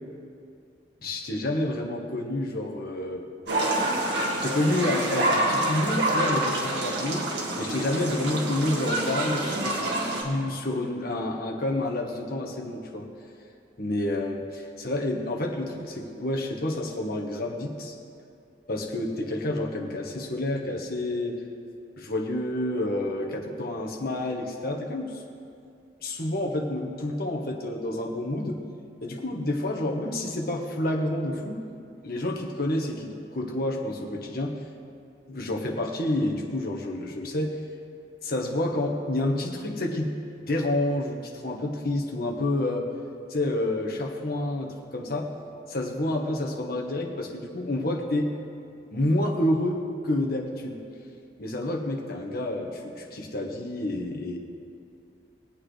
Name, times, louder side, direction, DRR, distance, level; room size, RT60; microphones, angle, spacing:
voice 1, 1.0-3.2 4.4-7.2 7.6-9.8 10.2-13.1 13.8-17.9 18.7-21.4 22.0-25.2 26.0-28.6 29.0-31.6 32.0-34.6 35.3-37.6 38.2-40.1 40.5-42.9 43.3-45.3 45.7-48.3 48.9-50.8 51.4-54.4, left 1 dB, 55° left, 0 dB, 1.4 m, -29 dB
sound 1, 3.5-10.2, right 1 dB, 70° right, 2.0 m, -27 dB
21.5 x 8.7 x 3.4 m, 2.5 s
head